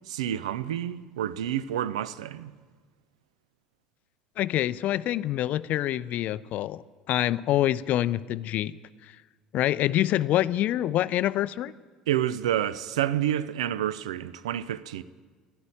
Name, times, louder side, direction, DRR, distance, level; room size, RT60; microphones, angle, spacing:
voice 1, 0.1-2.5 12.1-15.0, right 11 dB, 75° right, 0.5 m, -29 dB
voice 2, 4.4-8.7 9.5-11.7, left 13 dB, 55° left, 0.4 m, -26 dB
13.0 x 11.5 x 8.9 m
figure-of-eight pair, 60°, 3 cm